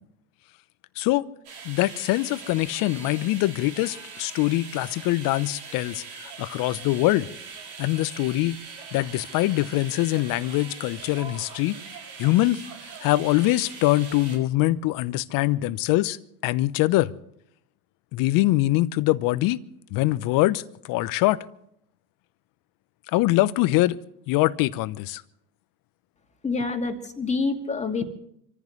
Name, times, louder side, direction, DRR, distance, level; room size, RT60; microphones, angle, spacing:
voice 1, 1.0-1.3 1.6-7.3 7.8-8.6 8.9-11.8 12.2-12.6 13.0-16.2 16.4-17.1 18.1-19.6 19.9-21.4 23.1-24.0 24.3-25.2, left 17 dB, 45° left, 0.9 m, -23 dB
sound 1, 1.4-14.4, right 5 dB, 65° right, 6.4 m, -42 dB
voice 2, 26.4-28.0, left 4 dB, 15° left, 2.5 m, -27 dB
26.5 x 14.5 x 3.2 m
hypercardioid pair, 95°, 48 cm